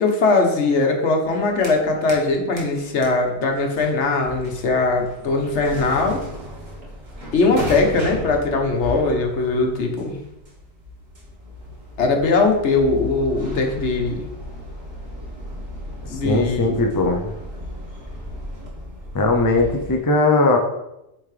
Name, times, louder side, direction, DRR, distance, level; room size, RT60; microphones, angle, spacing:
voice 1, 0.0-6.2 7.3-10.2 12.0-14.2 16.1-16.8, left 3 dB, 80° left, 2 dB, 1.3 m, -20 dB
sound 1, 1.2-2.3 2.6-20.0, left 1 dB, 40° right, 1.4 m, -35 dB
voice 2, 16.2-17.3 19.1-20.6, left 2 dB, 25° left, 3 dB, 0.5 m, -19 dB
8.2 x 3.6 x 3.3 m, 0.89 s
omnidirectional pair, 1.2 m